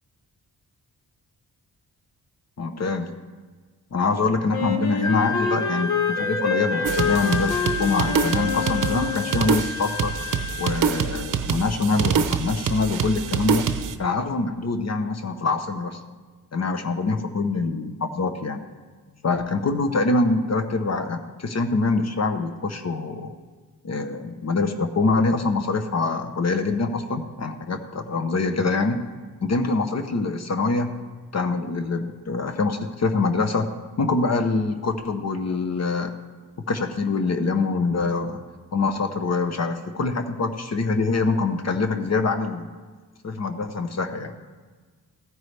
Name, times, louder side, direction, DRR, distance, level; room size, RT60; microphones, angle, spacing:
voice 1, 2.6-3.1 3.9-10.1 10.6-13.7 14.0-16.0 16.5-18.6 19.2-23.4 23.8-29.0 29.4-31.0 31.3-36.1 36.7-38.4 38.7-42.7 43.2-44.3, left 3 dB, 45° left, 8 dB, 0.8 m, -24 dB
Wind instrument woodwind instrument, 4.5-9.6, left 5 dB, 90° left, 1.1 m, -27 dB
Wind instrument woodwind instrument 2, 5.0-10.8, left 4 dB, 10° left, 0.4 m, -31 dB
sound 1, 6.8-13.9, right 7 dB, 60° right, 0.7 m, -26 dB
15.0 x 9.2 x 3.3 m, 1.4 s
cardioid pair, 100°, 36 cm